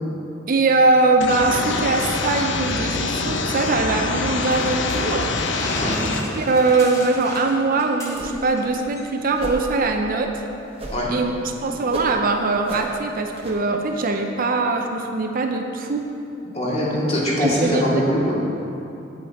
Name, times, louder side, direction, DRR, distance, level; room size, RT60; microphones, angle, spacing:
voice 1, 0.5-5.3 6.4-10.3 11.1-11.3 11.6-16.1 17.4-17.8, right 3 dB, 50° right, 4 dB, 0.6 m, -21 dB
sound 1, 1.2-6.2, left 3 dB, 70° left, 0.7 m, -25 dB
sound 2, 4.4-8.6 8.9-9.1 9.4-9.8, left 1 dB, 15° left, 1.3 m, -35 dB
voice 2, 5.7-6.1 10.9-11.1 16.5-18.4, equal, 35° left, -6 dB, 2.1 m, -22 dB
sound 3, 8.1-8.6 8.8-8.9 9.4-9.6 10.8-11.2 11.5-12.2 12.7-12.9 13.4-13.6, right 2 dB, 30° right, 1.1 m, -33 dB
8.6 x 8.4 x 4.2 m, 2.8 s
head